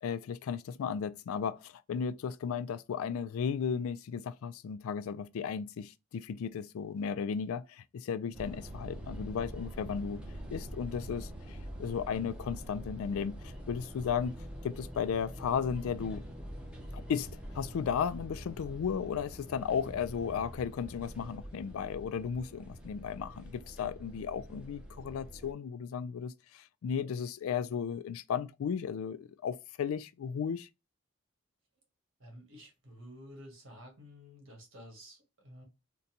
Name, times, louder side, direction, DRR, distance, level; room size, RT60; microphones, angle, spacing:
voice 1, 0.0-10.2 10.5-14.3 14.6-16.2 16.9-17.3 17.5-30.7, left 7 dB, 80° left, 0.3 m, -35 dB
sound 1, 8.3-25.5, equal, 5° right, 0.6 m, -45 dB
voice 2, 32.2-35.6, equal, 70° right, 1.5 m, -51 dB
3.9 x 2.2 x 2.7 m
head